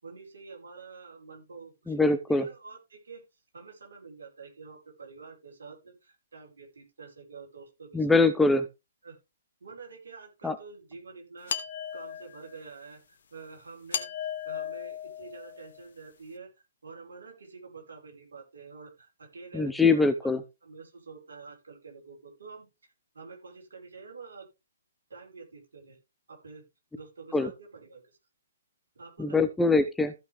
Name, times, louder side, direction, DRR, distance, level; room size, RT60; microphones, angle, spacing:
voice 1, 0.0-3.2 3.5-8.2 9.0-9.2 9.6-11.5 11.9-14.1 14.4-16.5 16.8-22.7 23.1-24.5 25.1-26.0 26.3-26.6 26.9-28.2 29.0-29.4, right 4 dB, 65° right, 0 dB, 5.3 m, -47 dB
voice 2, 1.9-2.5 7.9-8.6 10.4-10.6 19.5-20.4 27.3-27.5 29.2-30.1, left 3 dB, 5° left, 9 dB, 0.7 m, -23 dB
sound 1, 11.5-12.6 13.9-15.8, left 8 dB, 55° left, 1.3 m, -36 dB
15.0 x 6.0 x 3.4 m, 0.25 s
figure-of-eight pair, 125°, 0 cm